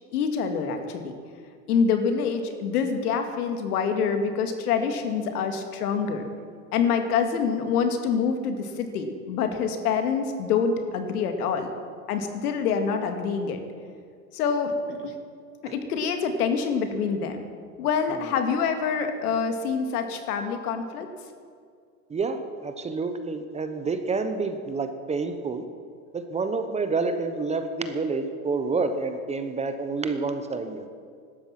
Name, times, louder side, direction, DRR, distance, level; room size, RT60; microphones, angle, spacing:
voice 1, 0.1-1.1 1.7-6.2 6.7-11.7 12.1-13.6 14.3-15.1 15.6-17.4 17.8-21.1, left 6 dB, 75° left, 6 dB, 2.3 m, -26 dB
voice 2, 22.1-25.6 26.1-30.9, right 4 dB, 15° right, 8 dB, 0.9 m, -28 dB
17.0 x 12.5 x 5.9 m, 2.1 s
supercardioid pair, 130°, 46 cm